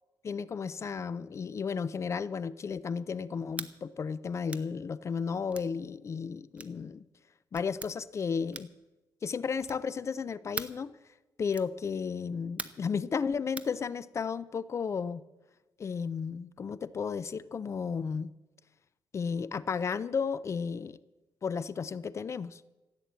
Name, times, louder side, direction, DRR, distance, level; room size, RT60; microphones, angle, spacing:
voice 1, 0.2-7.0 7.5-8.7 9.2-11.0 11.4-15.2 15.8-18.3 19.1-21.0 21.4-22.6, left 6 dB, 35° left, 18 dB, 0.5 m, -33 dB
sound 1, 3.5-3.7 4.5-4.7 5.5-5.7 6.6-6.8 7.5-7.9 8.5-8.8 9.6-9.9 10.5-10.8 11.5-11.7 12.6-12.9 13.6-13.7, right 3 dB, 15° right, 0.8 m, -41 dB
15.5 x 8.9 x 8.2 m, 1.1 s
cardioid pair, 125°, 8 cm